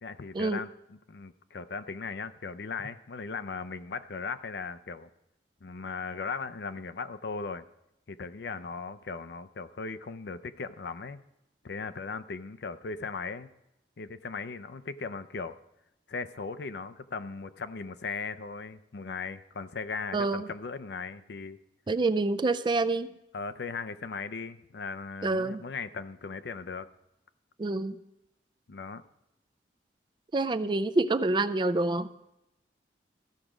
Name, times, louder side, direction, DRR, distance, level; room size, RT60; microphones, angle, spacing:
voice 1, 0.0-5.1 5.6-7.6 8.1-11.2 11.6-13.5 14.0-15.6 16.1-21.6 23.3-26.9 28.7-29.0, left 4 dB, 70° left, 13 dB, 0.5 m, -38 dB
voice 2, 20.1-20.5 21.9-23.1 25.2-25.6 27.6-28.0 30.3-32.1, right 2 dB, 25° right, 12 dB, 0.3 m, -27 dB
14.5 x 6.0 x 5.0 m, 0.86 s
head